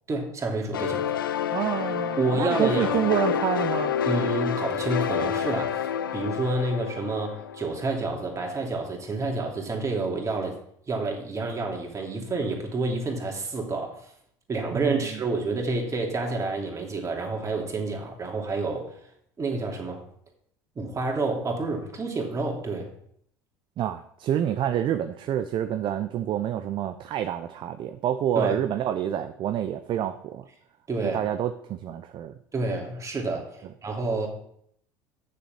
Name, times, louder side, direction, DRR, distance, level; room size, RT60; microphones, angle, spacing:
voice 1, 0.1-1.1 2.2-3.1 4.0-10.6 10.9-14.1 14.5-19.0 19.4-20.0 20.8-22.9 28.3-28.6 30.9-31.2 32.5-34.3, right 3 dB, 30° right, 2.9 m, -29 dB
sound 1, 0.7-8.2, left 8 dB, 90° left, 0.6 m, -28 dB
voice 2, 1.5-3.9 14.7-15.0 23.8-30.4 31.0-32.3, right 10 dB, 45° right, 0.7 m, -28 dB
7.0 x 6.8 x 7.1 m
hypercardioid pair, 75°, 11 cm